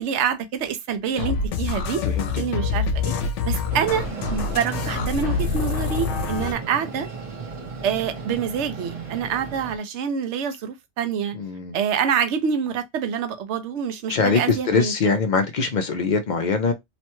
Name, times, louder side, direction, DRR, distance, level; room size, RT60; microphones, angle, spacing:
voice 1, 0.0-2.0 2.4-3.1 3.4-4.0 4.3-7.1 7.8-11.4 11.7-14.9, right 7 dB, 75° right, 0.9 m, -26 dB
sound 1, 1.2-6.5, left 5 dB, 80° left, 0.9 m, -26 dB
Train, 3.7-9.8, right 4 dB, 35° right, 0.8 m, -35 dB
voice 2, 11.3-11.8 14.1-16.7, left 4 dB, 55° left, 0.5 m, -22 dB
3.0 x 2.2 x 2.9 m
omnidirectional pair, 1.2 m